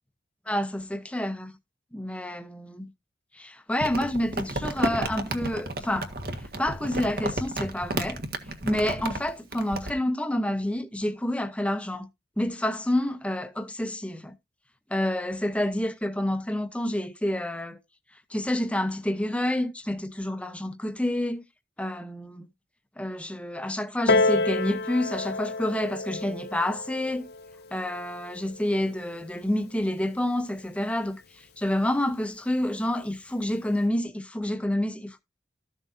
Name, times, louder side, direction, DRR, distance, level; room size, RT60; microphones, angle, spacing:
voice 1, 0.5-1.5 1.9-2.9 3.3-6.1 6.6-8.2 8.6-12.1 12.4-14.3 14.9-17.8 18.3-21.4 21.8-22.5 23.0-27.3 27.7-35.2, left 1 dB, 5° left, 0.8 m, -28 dB
Crumpling crinkling, 3.8-9.9, right 1 dB, 55° right, 1.6 m, -32 dB
Piano, 24.1-29.3 30.1-30.2, left 3 dB, 60° left, 0.6 m, -29 dB
14.0 x 7.2 x 2.7 m
head